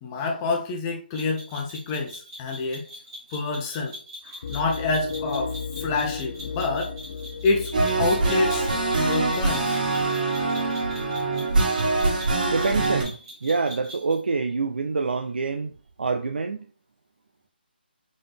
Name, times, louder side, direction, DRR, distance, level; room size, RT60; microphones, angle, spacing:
voice 1, 0.0-2.9 3.3-4.0 4.2-6.9 7.4-7.7 8.0-8.7 9.0-9.8, left 3 dB, 20° left, 0.8 m, -27 dB
sound 1, 1.2-14.2, equal, 25° right, 1.9 m, -43 dB
sound 2, 4.4-9.7, left 5 dB, 45° left, 0.4 m, -35 dB
sound 3, 7.7-13.0, right 3 dB, 50° right, 1.7 m, -24 dB
voice 2, 12.5-15.7 16.0-16.6, right 4 dB, 75° right, 0.5 m, -26 dB
4.0 x 3.7 x 3.4 m
hypercardioid pair, 160°, 6 cm